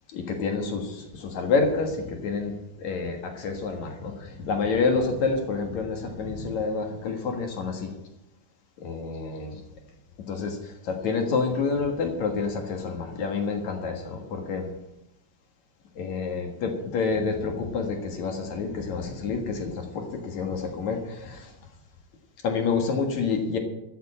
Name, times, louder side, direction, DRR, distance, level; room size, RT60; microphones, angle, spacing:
voice 1, 0.1-7.9 8.8-9.5 10.3-10.6 10.8-14.7 16.0-21.5 22.4-23.6, left 4 dB, 55° left, 4 dB, 2.6 m, -28 dB
13.0 x 7.0 x 8.6 m, 0.86 s
omnidirectional pair, 4.4 m